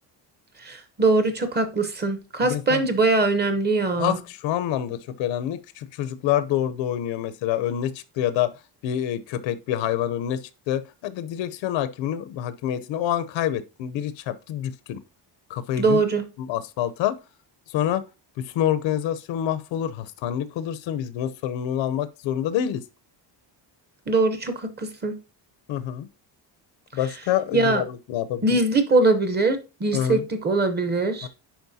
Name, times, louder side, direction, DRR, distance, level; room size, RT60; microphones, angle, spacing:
voice 1, 0.6-4.2 15.8-16.2 24.1-25.1 27.5-27.8 28.4-31.3, right 3 dB, 25° right, 0.8 m, -22 dB
voice 2, 2.4-2.9 4.0-8.5 8.8-15.0 15.5-16.0 16.4-17.1 17.7-18.0 18.4-22.8 25.7-26.1 26.9-28.6 29.9-30.2 31.2-31.3, left 11 dB, 85° left, 0.8 m, -27 dB
10.5 x 4.3 x 2.7 m
cardioid pair, 180°, 44 cm